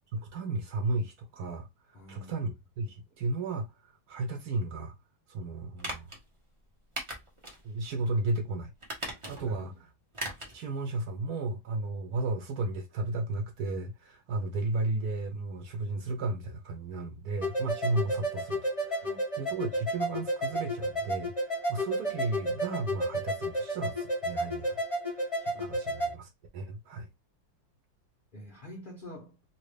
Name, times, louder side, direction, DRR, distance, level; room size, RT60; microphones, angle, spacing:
voice 1, 0.1-1.7 2.1-4.9 5.3-6.1 7.6-8.7 9.1-9.7 10.5-19.1 19.4-24.8 25.1-27.1, right 2 dB, 60° right, 1.2 m, -34 dB
voice 2, 1.9-2.5 9.4-9.8 19.0-19.2 25.5-25.6 28.3-29.4, equal, 80° left, 0.4 m, -46 dB
sound 1, 5.8-6.2 7.0-7.6 8.0-8.1 8.8-9.6 10.1-10.6 10.9-11.0, right 1 dB, 25° right, 0.6 m, -38 dB
sound 2, 17.4-26.1, equal, 30° left, 0.6 m, -32 dB
3.0 x 2.9 x 3.2 m
omnidirectional pair, 2.1 m